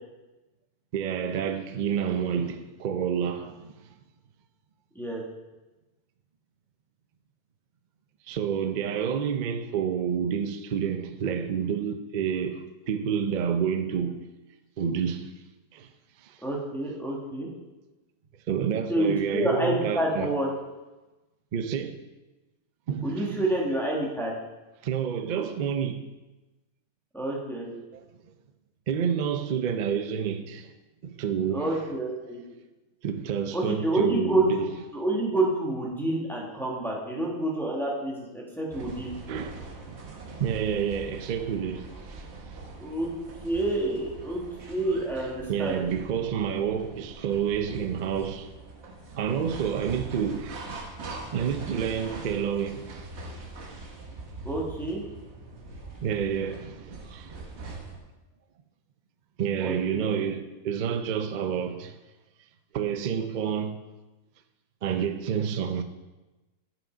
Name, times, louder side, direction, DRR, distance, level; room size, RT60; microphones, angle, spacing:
voice 1, 0.9-3.7 8.3-14.2 14.8-15.3 15.7-15.9 16.2-16.4 18.5-20.4 21.5-22.0 22.9-23.4 24.8-26.0 27.9-28.0 28.9-30.7 31.0-31.6 33.0-34.7 39.3-42.2 45.5-48.5 49.2-50.6 51.3-53.1 56.0-57.4 59.4-61.9 62.7-63.8 64.8-65.8, right 8 dB, 75° right, 0.4 m, -29 dB
voice 2, 16.4-17.5 18.9-20.5 23.0-24.3 27.1-27.7 31.5-32.4 33.5-34.4 34.9-39.1 42.8-43.1 43.4-44.4 44.7-45.8 54.4-55.0 59.6-60.1, right 2 dB, ahead, 1.4 m, -28 dB
sound 1, 38.7-58.0, right 3 dB, 50° right, 1.3 m, -42 dB
7.8 x 6.1 x 5.1 m
omnidirectional pair, 1.6 m